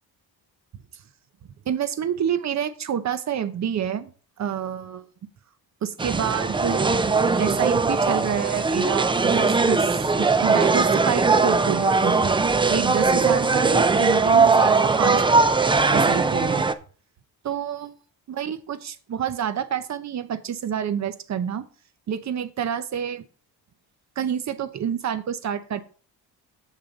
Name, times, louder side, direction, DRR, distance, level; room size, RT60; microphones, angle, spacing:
voice 1, 1.7-4.1 4.4-5.0 5.8-6.9 7.4-12.3 12.7-15.2 15.9-16.6 17.4-17.9 18.3-21.6 22.1-23.2 24.2-25.8, right 8 dB, 45° right, 13 dB, 0.8 m, -28 dB
sound 1, 6.0-16.7, right 4 dB, 15° right, 0.3 m, -20 dB
7.5 x 6.8 x 3.9 m, 0.40 s
cardioid pair, 145°, 40 cm